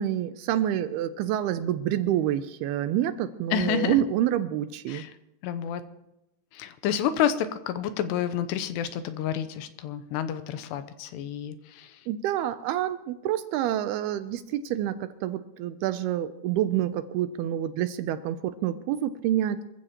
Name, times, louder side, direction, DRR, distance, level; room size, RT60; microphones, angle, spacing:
voice 1, 0.0-5.0 12.1-19.6, right 11 dB, 80° right, 11 dB, 2.4 m, -28 dB
voice 2, 3.5-4.0 4.9-5.1 5.4-5.8 6.5-12.0, left 9 dB, 80° left, 10 dB, 2.8 m, -29 dB
25.5 x 15.0 x 3.0 m, 0.89 s
omnidirectional pair, 5.0 m